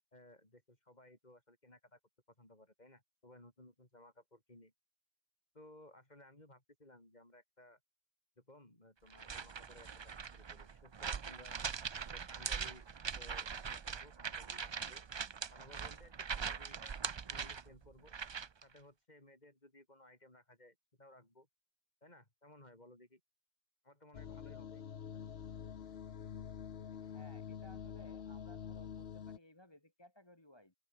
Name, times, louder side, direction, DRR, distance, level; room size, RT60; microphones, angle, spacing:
voice 1, 0.1-2.0 2.4-4.7 5.5-7.8 8.4-11.6 12.1-12.9 13.1-15.0 15.5-17.0 17.3-18.1 18.6-21.5 22.0-23.2 23.8-25.0, left 1 dB, 40° left, 4.9 m, -60 dB
sound 1, 9.1-18.6, right 6 dB, 40° right, 0.4 m, -42 dB
sound 2, 24.1-29.4, left 8 dB, 70° left, 1.2 m, -47 dB
voice 2, 26.9-30.7, left 1 dB, 25° left, 2.3 m, -60 dB
open air
omnidirectional pair, 1.1 m